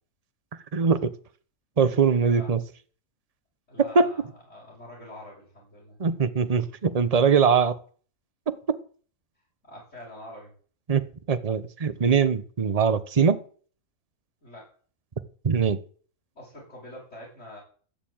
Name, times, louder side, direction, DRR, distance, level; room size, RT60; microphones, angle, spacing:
voice 1, 0.7-1.1 1.8-2.6 3.8-4.1 6.0-7.8 8.5-8.8 10.9-13.4 15.4-15.8, right 6 dB, 30° right, 12 dB, 0.9 m, -22 dB
voice 2, 3.7-6.0 9.6-10.5 14.4-14.7 16.4-17.6, left 1 dB, 55° left, -8 dB, 7.2 m, -45 dB
13.5 x 7.0 x 8.8 m, 0.44 s
omnidirectional pair, 1.5 m